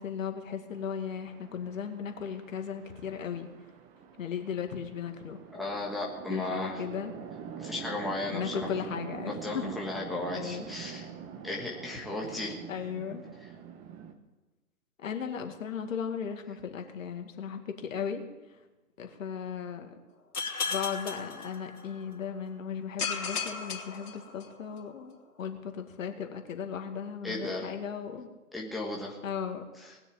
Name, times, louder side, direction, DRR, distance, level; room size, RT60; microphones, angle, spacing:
voice 1, 0.0-3.5 4.2-5.4 6.3-7.1 8.3-9.7 10.3-10.7 12.7-13.2 15.0-18.2 19.0-20.0 20.7-28.3 29.2-29.6, left 7 dB, 60° left, 5 dB, 2.2 m, -36 dB
Chatter / Traffic noise roadway noise / Train, 0.7-14.1, right 7 dB, 15° right, 0.9 m, -45 dB
voice 2, 5.5-6.8 7.6-8.7 9.4-11.1 11.4-12.6 27.2-27.7 28.5-29.2 29.8-29.9, left 2 dB, ahead, -3 dB, 1.5 m, -35 dB
sound 1, 20.3-22.1 23.0-24.8, left 5 dB, 80° left, 3.0 m, -35 dB
19.5 x 6.8 x 8.9 m, 1.1 s
hypercardioid pair, 140°, 45 cm